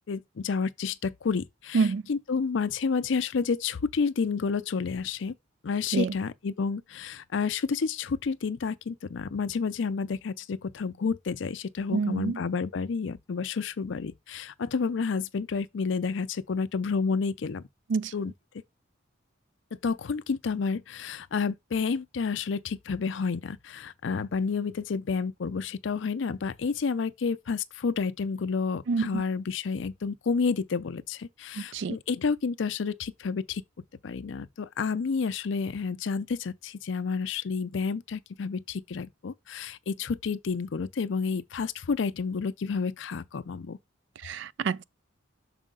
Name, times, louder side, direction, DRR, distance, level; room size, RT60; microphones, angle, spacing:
voice 1, 0.0-5.3 5.6-17.6 18.1-18.3 19.8-33.6 34.0-43.8, left 5 dB, 65° left, 0.5 m, -30 dB
voice 2, 11.9-12.4 17.9-18.1 28.9-29.2 31.6-32.0 44.2-44.8, right 4 dB, 60° right, 0.4 m, -27 dB
6.3 x 4.8 x 3.7 m
head